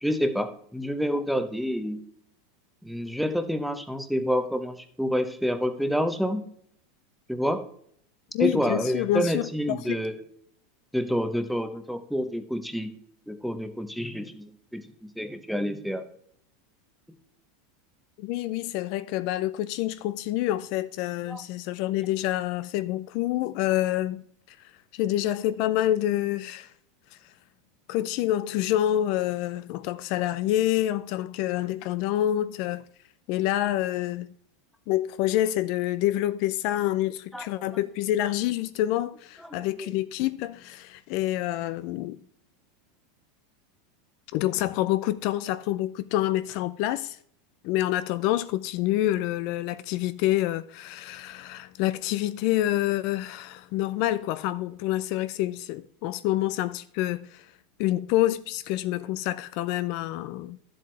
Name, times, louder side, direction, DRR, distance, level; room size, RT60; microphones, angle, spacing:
voice 1, 0.0-2.0 2.8-6.5 7.3-7.6 8.4-10.2 10.9-12.9 13.3-16.0 21.3-21.4 37.3-37.7 39.8-39.9, equal, ahead, 0.8 m, -28 dB
voice 2, 8.3-10.0 18.2-26.7 27.9-32.8 33.3-34.3 34.9-42.2 44.3-47.2 47.6-57.5 57.8-60.6, left 14 dB, 55° left, 0.4 m, -27 dB
11.5 x 7.7 x 3.3 m
supercardioid pair, 145°, 0 cm